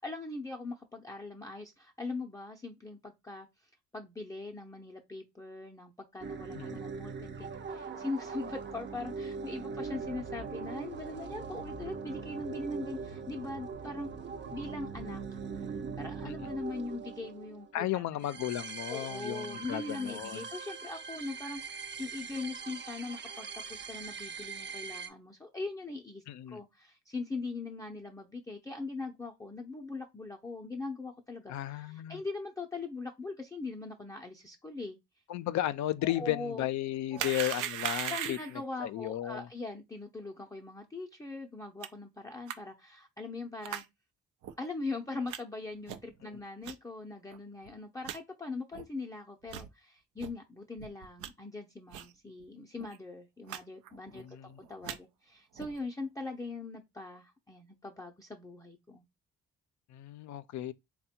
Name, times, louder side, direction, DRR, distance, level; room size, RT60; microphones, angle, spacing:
voice 1, 0.0-3.5 3.9-14.1 14.5-15.4 15.7-18.0 18.9-26.2 26.5-35.0 36.0-36.6 37.1-37.3 37.6-37.7 38.1-43.8 44.6-54.2 54.6-59.0, left 3 dB, 10° left, 0.5 m, -41 dB
sound 1, 6.2-25.1, right 5 dB, 40° right, 0.6 m, -42 dB
sound 2, 9.7-16.3, right 3 dB, 70° right, 0.9 m, -49 dB
voice 2, 17.7-20.5 26.3-26.6 31.5-32.2 35.3-39.5 46.2-46.3 54.1-54.6 59.9-60.7, left 13 dB, 70° left, 0.5 m, -35 dB
sound 3, 37.2-38.6 41.8-41.9 42.5-42.6 43.6-43.9 44.4-44.5 45.3-45.4 45.9-46.1 46.6-46.7 47.3-47.4 47.7-47.8 48.0-48.2 48.7-48.9 49.4-49.7 50.2-50.3 50.8-51.3 51.9-52.1 52.4-52.5 52.8-53.0 53.5-53.6 53.9-54.2 54.6-55.0 55.6-55.8, right 11 dB, 85° right, 0.5 m, -38 dB
3.5 x 2.2 x 4.2 m
cardioid pair, 90°, 30 cm